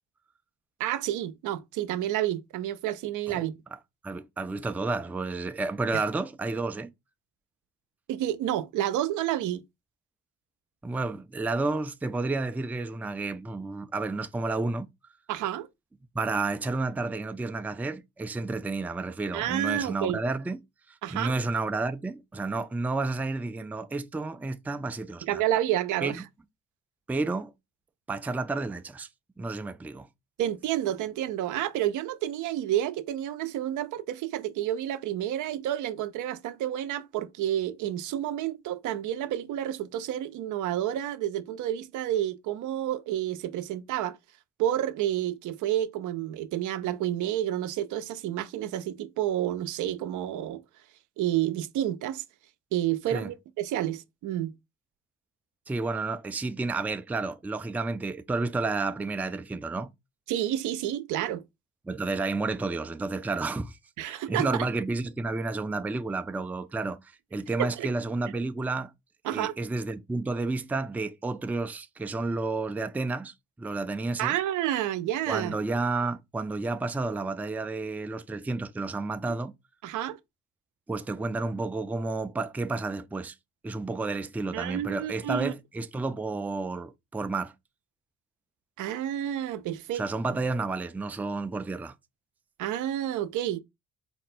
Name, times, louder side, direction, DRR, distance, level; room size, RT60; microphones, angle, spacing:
voice 1, 0.8-3.6 5.9-6.0 8.1-9.6 15.3-15.7 19.3-20.2 21.0-21.3 25.2-26.2 30.4-44.2 44.6-50.6 51.2-52.2 52.7-54.5 60.3-61.4 64.0-64.7 67.6-67.9 69.2-69.6 74.2-75.6 79.8-80.2 84.5-85.5 88.8-90.0 92.6-93.6, right 12 dB, 80° right, 0.5 m, -30 dB
voice 2, 3.3-6.9 10.8-14.9 16.1-20.6 20.9-25.4 26.0-26.2 27.1-27.5 28.1-29.1 29.4-30.1 53.1-53.3 55.7-59.9 61.9-68.9 69.3-74.4 75.3-79.5 80.9-83.3 83.6-87.5 89.9-91.9, right 3 dB, 5° right, 0.3 m, -31 dB
4.2 x 2.2 x 4.2 m
cardioid pair, 90°, 30 cm